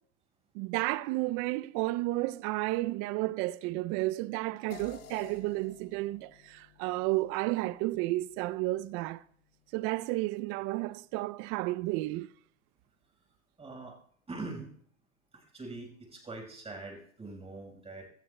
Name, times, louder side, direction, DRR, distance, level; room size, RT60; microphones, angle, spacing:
voice 1, 0.5-9.2 9.7-12.3, right 19 dB, 35° right, 0.4 m, -32 dB
sound 1, 4.7-9.4, left 8 dB, 35° left, 2.0 m, -53 dB
voice 2, 13.6-14.0 14.3-14.7 15.3-18.1, right 3 dB, 15° right, 4.8 m, -43 dB
25.5 x 14.5 x 2.2 m
hypercardioid pair, 100°, 39 cm